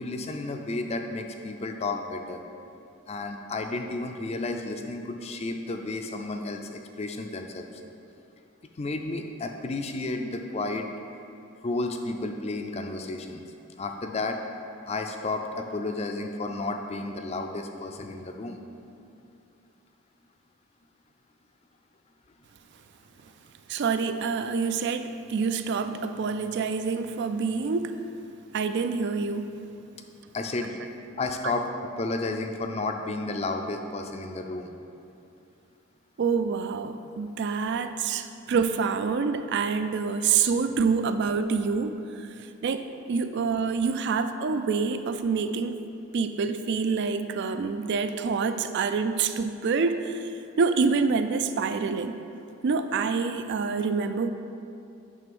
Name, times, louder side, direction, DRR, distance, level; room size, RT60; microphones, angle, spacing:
voice 1, 0.0-2.4 3.1-7.7 8.8-10.9 11.6-13.4 13.8-14.4 14.9-18.6 30.3-30.7 31.2-34.7, left 2 dB, 30° left, 5 dB, 0.4 m, -32 dB
voice 2, 23.7-27.9 28.5-29.5 31.4-31.5 36.2-42.3 42.6-45.8 46.1-50.3 50.6-52.1 52.6-54.3, right 5 dB, 50° right, 10 dB, 0.3 m, -27 dB
9.1 x 3.3 x 5.3 m, 2.7 s
head